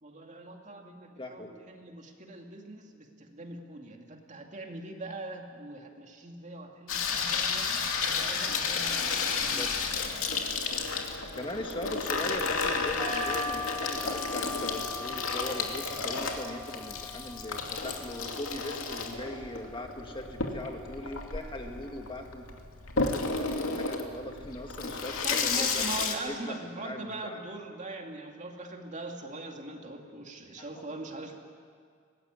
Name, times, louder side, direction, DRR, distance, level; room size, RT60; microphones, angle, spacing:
voice 1, 0.0-7.7 8.1-9.7 25.2-31.4, right 2 dB, 35° right, 2 dB, 2.4 m, -41 dB
voice 2, 1.2-1.5 9.4-9.7 11.4-22.5 23.0-25.8 26.3-27.4 30.6-31.1, left 1 dB, 25° left, 3 dB, 1.9 m, -40 dB
Water tap faucet / Sink (filling or washing), 6.9-26.1, left 4 dB, 80° left, 2.5 m, -32 dB
sound 1, 13.0-22.0, left 2 dB, 20° right, 4.8 m, -42 dB
23.5 x 19.0 x 9.6 m, 2.1 s
head